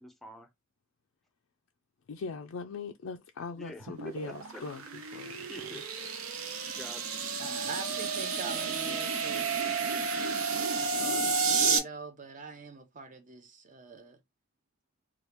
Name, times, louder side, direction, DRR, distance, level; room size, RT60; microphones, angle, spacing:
voice 1, 0.0-0.5 3.6-4.1 4.5-4.6 5.5-6.1 6.7-7.2, equal, ahead, 0.6 m, -47 dB
voice 2, 2.1-5.5 5.7-5.8, left 4 dB, 70° left, 0.4 m, -41 dB
sound 1, 3.8-11.8, right 5 dB, 90° right, 0.7 m, -31 dB
voice 3, 7.4-10.0 10.8-14.2, right 4 dB, 40° right, 0.7 m, -43 dB
3.0 x 2.3 x 3.3 m
head